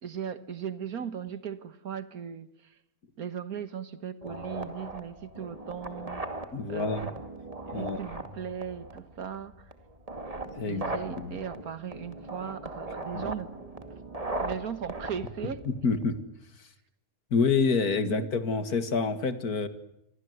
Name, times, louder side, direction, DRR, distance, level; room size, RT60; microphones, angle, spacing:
voice 1, 0.0-2.8 3.2-6.2 6.7-7.2 7.7-9.7 10.7-13.5 13.9-14.0 14.3-15.7 18.0-18.3, right 8 dB, 75° right, 13 dB, 1.9 m, -38 dB
sound 1, 4.2-16.2, right 2 dB, 25° right, 2.4 m, -39 dB
voice 2, 6.5-7.1 7.7-8.0 10.5-10.8 11.2-11.4 13.1-13.2 15.7-16.2 17.3-19.7, left 4 dB, 85° left, 11 dB, 2.4 m, -27 dB
27.0 x 24.0 x 8.1 m, 0.81 s
omnidirectional pair, 1.6 m